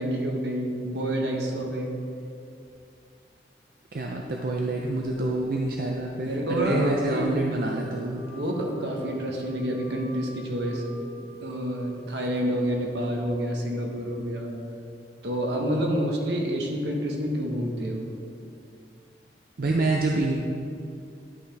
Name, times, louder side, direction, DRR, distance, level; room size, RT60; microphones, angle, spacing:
voice 1, 0.0-1.9 5.2-5.3 6.3-7.4 8.3-10.8 11.4-14.6 15.2-18.1, equal, 70° right, 0 dB, 1.2 m, -28 dB
voice 2, 3.9-8.2 19.6-20.3, right 2 dB, 50° right, 0 dB, 0.5 m, -27 dB
Wind instrument woodwind instrument, 6.8-12.4, equal, 80° left, 0.8 m, -44 dB
11.0 x 5.8 x 3.4 m, 2.5 s
head